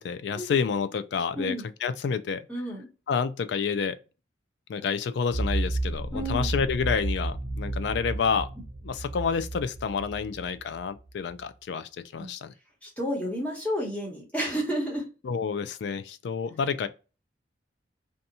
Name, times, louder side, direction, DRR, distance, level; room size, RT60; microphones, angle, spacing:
voice 1, 0.0-2.4 3.1-4.0 4.7-8.5 8.8-12.5 15.2-16.9, left 6 dB, 65° left, 0.3 m, -29 dB
voice 2, 1.3-1.7 2.5-2.9 6.1-6.5 12.2-12.3 12.8-15.1, equal, 10° left, 1.0 m, -31 dB
sound 1, 5.3-11.1, right 2 dB, 20° right, 0.6 m, -32 dB
2.7 x 2.2 x 2.7 m
head